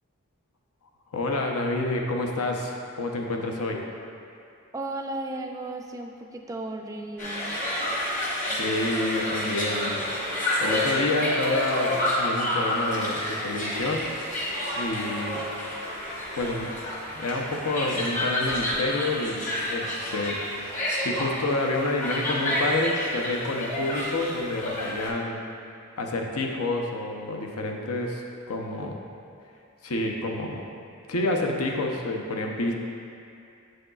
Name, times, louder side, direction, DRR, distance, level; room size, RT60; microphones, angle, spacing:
voice 1, 1.1-3.8 8.6-10.0 10.6-14.1 14.8-15.4 16.4-16.8 17.1-20.4 20.8-25.4 26.0-29.0 29.8-30.6 31.1-32.7, left 2 dB, 80° left, 1 dB, 0.7 m, -28 dB
voice 2, 4.7-7.5, right 2 dB, 15° right, 2 dB, 0.3 m, -35 dB
sound 1, 7.2-25.1, left 1 dB, 35° left, 1.1 m, -29 dB
7.9 x 6.3 x 2.3 m, 2.5 s
head